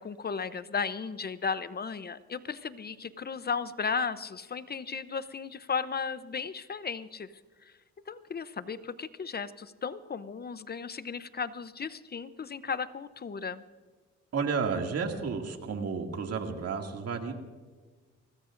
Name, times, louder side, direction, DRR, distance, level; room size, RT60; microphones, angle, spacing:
voice 1, 0.0-7.3 7.6-7.7 8.1-13.6, left 5 dB, 30° left, 14 dB, 0.7 m, -35 dB
voice 2, 14.3-17.3, right 5 dB, 55° right, 3 dB, 2.4 m, -32 dB
24.5 x 19.0 x 2.6 m, 1.4 s
cardioid pair, 90°, 30 cm